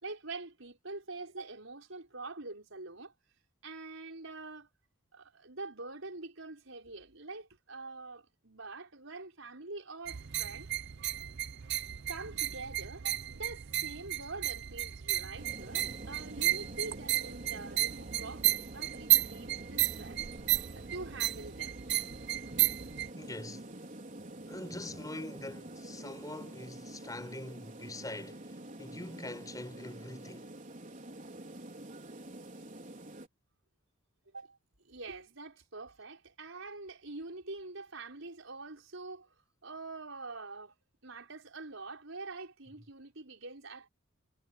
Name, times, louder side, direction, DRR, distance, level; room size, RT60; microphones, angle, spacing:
voice 1, 0.0-3.1 3.6-4.7 5.1-10.7 12.1-20.3 20.8-21.8 34.2-34.6 34.8-39.3 39.6-40.7 41.0-43.9, right 3 dB, 75° right, 6.1 m, -45 dB
sound 1, 10.1-23.1, right 14 dB, 60° right, 0.6 m, -33 dB
sound 2, 15.4-33.3, right 1 dB, 40° right, 4.3 m, -47 dB
voice 2, 23.2-23.7 24.5-30.5, left 1 dB, 20° left, 4.9 m, -44 dB
head